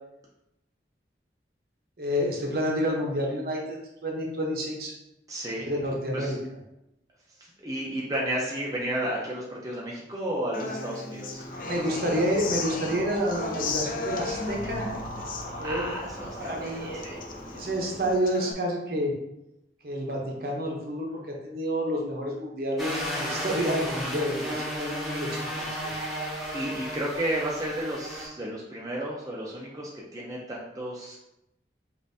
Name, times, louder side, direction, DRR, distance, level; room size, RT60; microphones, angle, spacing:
voice 1, 2.0-4.9 5.6-6.4 11.6-14.9 15.6-16.0 16.4-17.2 17.5-19.1 19.8-24.5 24.8-25.3 25.6-25.9 26.4-26.5, equal, 55° right, 0 dB, 0.8 m, -29 dB
voice 2, 5.3-5.7 6.1-6.4 7.4-12.2 15.6-17.2 23.4-23.7 26.5-31.2, right 1 dB, 20° right, -4 dB, 0.5 m, -33 dB
Human voice / Acoustic guitar, 10.5-18.5, left 3 dB, 50° left, 0.4 m, -36 dB
sound 1, 11.3-18.2, equal, 25° left, 0.8 m, -40 dB
sound 2, 22.8-28.3, equal, ahead, 0.9 m, -33 dB
5.2 x 2.5 x 2.6 m, 0.87 s
head